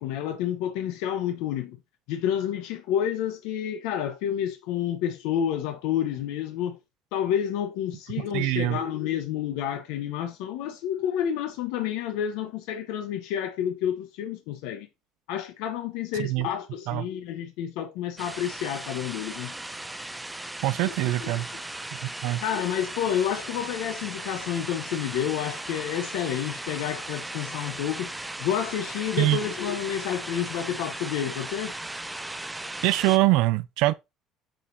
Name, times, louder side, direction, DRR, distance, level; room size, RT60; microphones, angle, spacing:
voice 1, 0.0-1.8 2.1-6.8 7.1-14.9 15.3-19.5 21.2-21.3 22.4-28.1 28.4-31.7, left 10 dB, 85° left, 0.9 m, -29 dB
voice 2, 8.3-8.8 16.2-16.5 16.9-17.0 20.6-21.5 22.2-22.4 29.2-29.4 32.8-33.9, right 18 dB, 70° right, 0.4 m, -23 dB
sound 1, 18.2-33.2, right 1 dB, 5° right, 0.4 m, -37 dB
7.4 x 5.1 x 2.7 m
cardioid pair, 160°, 0 cm